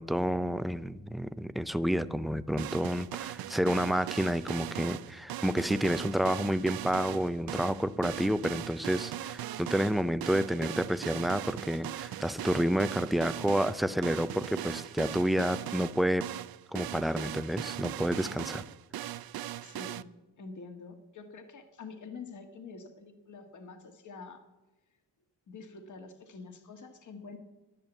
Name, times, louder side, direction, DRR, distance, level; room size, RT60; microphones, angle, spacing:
voice 1, 0.0-16.3 16.7-18.6, equal, ahead, 13 dB, 0.3 m, -29 dB
sound 1, 2.6-20.0, right 13 dB, 55° right, 0.5 m, -39 dB
voice 2, 19.6-20.0 20.4-24.4 25.5-27.4, left 4 dB, 40° left, 6 dB, 1.7 m, -46 dB
11.5 x 10.5 x 7.1 m, 1.1 s
cardioid pair, 115°, 43 cm